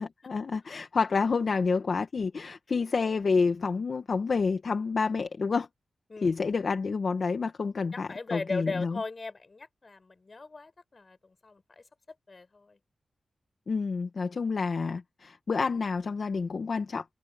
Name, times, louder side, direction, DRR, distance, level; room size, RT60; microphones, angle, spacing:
voice 1, 0.0-5.7 6.2-9.0 13.7-17.0, left 4 dB, 65° left, 1.5 m, -29 dB
voice 2, 7.9-11.8 12.3-12.8, left 3 dB, 45° left, 4.7 m, -38 dB
cardioid pair, 55°, 0 cm